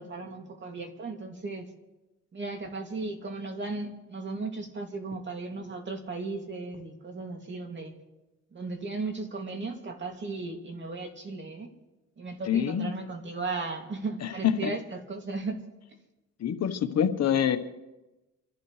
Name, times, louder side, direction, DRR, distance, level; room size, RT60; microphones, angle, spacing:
voice 1, 0.0-1.7 2.3-7.9 8.5-11.7 12.2-15.6, right 3 dB, 40° right, 3 dB, 2.6 m, -36 dB
voice 2, 12.5-12.9 14.2-14.3 14.6-14.7 16.4-17.6, left 8 dB, 60° left, 8 dB, 1.2 m, -26 dB
28.5 x 12.0 x 3.3 m, 1.0 s
cardioid pair, 90°, 30 cm